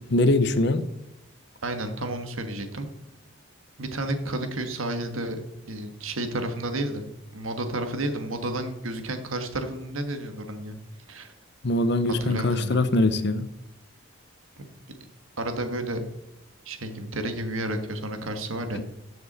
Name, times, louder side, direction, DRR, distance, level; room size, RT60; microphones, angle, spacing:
voice 1, 0.1-0.9 11.6-13.5, left 2 dB, 55° left, 12 dB, 0.7 m, -22 dB
voice 2, 1.6-2.9 3.8-5.4 5.7-10.8 11.1-11.3 12.0-12.8 15.4-16.0 16.6-18.8, right 1 dB, 80° right, 7 dB, 1.5 m, -31 dB
13.5 x 6.9 x 4.2 m, 0.91 s
head